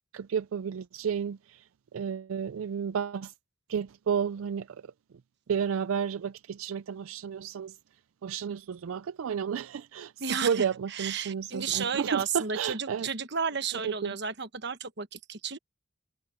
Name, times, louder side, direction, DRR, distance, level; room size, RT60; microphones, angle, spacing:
voice 1, 0.1-1.6 1.9-3.3 3.7-4.7 5.5-7.8 8.2-13.1 13.8-14.2, right 7 dB, 75° right, 0.4 m, -32 dB
voice 2, 10.2-15.6, right 6 dB, 55° right, 1.2 m, -33 dB
head